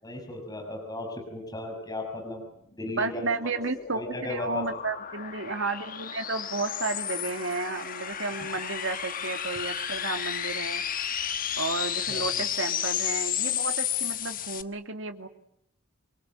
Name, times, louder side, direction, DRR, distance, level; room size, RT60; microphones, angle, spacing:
voice 1, 0.0-2.4 2.8-3.5 3.9-4.7 12.1-12.3, left 2 dB, 20° left, 1 dB, 6.4 m, -36 dB
voice 2, 2.9-10.8 11.6-15.3, right 3 dB, 60° right, 6 dB, 2.6 m, -32 dB
sound 1, 3.3-14.6, left 9 dB, 40° left, 1.3 m, -32 dB
28.5 x 23.0 x 9.1 m, 0.73 s
head